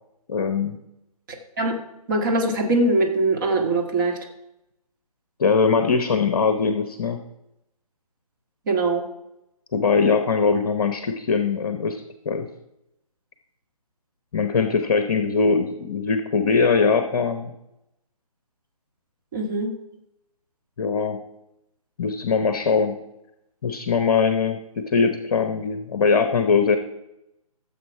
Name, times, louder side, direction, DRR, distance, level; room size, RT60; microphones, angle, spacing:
voice 1, 0.3-0.8 5.4-7.2 9.7-12.5 14.3-17.5 20.8-21.2 22.0-23.0 23.6-26.8, left 5 dB, 35° left, 7 dB, 0.9 m, -21 dB
voice 2, 2.1-4.2 8.7-9.0 19.3-19.8, right 2 dB, 35° right, 1 dB, 1.9 m, -22 dB
13.5 x 7.3 x 4.7 m, 0.87 s
figure-of-eight pair, 145°, 19 cm